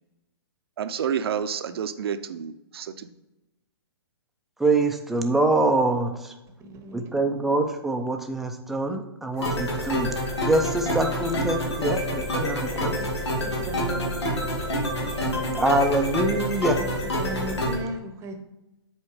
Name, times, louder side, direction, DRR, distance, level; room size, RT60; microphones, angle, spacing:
voice 1, 0.8-3.1, right 8 dB, 65° right, 10 dB, 0.6 m, -29 dB
voice 2, 4.6-6.1 6.9-10.1 10.5-13.0 15.5-16.8, right 2 dB, ahead, 3 dB, 0.5 m, -24 dB
voice 3, 6.6-7.1 12.8-14.1 16.8-16.9 17.2-18.3, right 2 dB, 20° right, 6 dB, 0.9 m, -36 dB
sound 1, 9.4-17.8, equal, 85° left, 2.1 m, -27 dB
7.3 x 4.4 x 4.8 m, 0.97 s
hypercardioid pair, 145°, 14 cm